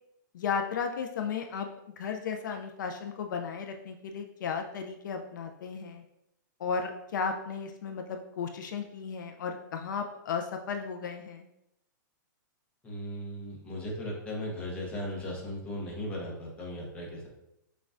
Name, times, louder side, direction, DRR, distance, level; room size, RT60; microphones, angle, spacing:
voice 1, 0.3-1.7 2.0-6.0 6.6-11.5, left 6 dB, 70° left, 5 dB, 0.4 m, -34 dB
voice 2, 12.8-17.3, left 1 dB, 10° left, -3 dB, 0.7 m, -37 dB
6.0 x 2.3 x 2.5 m, 0.85 s
hypercardioid pair, 165°, 11 cm